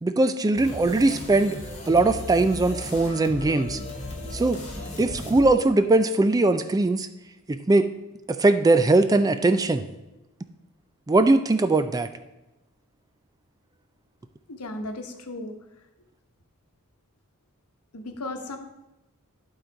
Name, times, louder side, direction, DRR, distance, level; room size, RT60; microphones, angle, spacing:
voice 1, 0.0-1.6 1.9-3.8 4.3-4.6 5.0-7.1 7.5-7.9 8.3-9.9 11.1-12.1, right 2 dB, 15° right, 10 dB, 0.3 m, -20 dB
sound 1, 0.6-6.3, left 1 dB, 30° left, 1.9 m, -37 dB
voice 2, 14.5-15.6 17.9-18.6, left 2 dB, 85° left, 6 dB, 1.0 m, -35 dB
11.5 x 4.0 x 4.5 m, 0.99 s
head